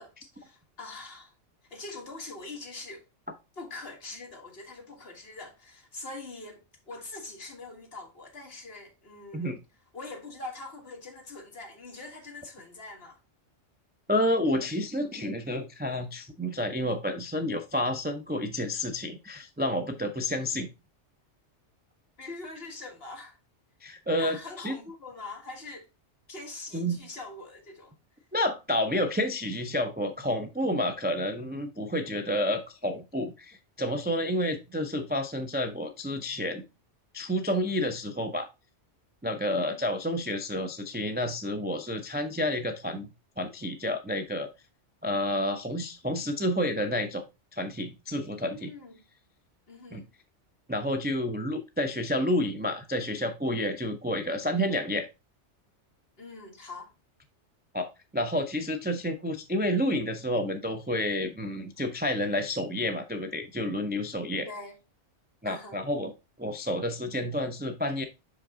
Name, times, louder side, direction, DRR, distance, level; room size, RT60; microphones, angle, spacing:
voice 1, 0.0-1.3 1.7-3.0 3.6-9.5 9.9-13.2 22.2-23.4 24.2-25.9 26.3-27.9 39.4-39.8 48.5-49.0 49.7-50.1 56.2-56.9 64.5-64.8 65.5-65.8, left 3 dB, 55° left, 1.8 m, -43 dB
voice 2, 14.1-20.7 23.8-24.7 26.7-27.0 28.3-36.6 37.1-38.5 39.2-43.1 43.4-44.5 45.0-47.2 47.5-48.7 49.9-50.0 50.7-55.1 57.7-64.5 65.4-66.1 66.4-68.0, left 1 dB, 15° right, 0.4 m, -30 dB
5.7 x 5.2 x 3.6 m
omnidirectional pair, 1.2 m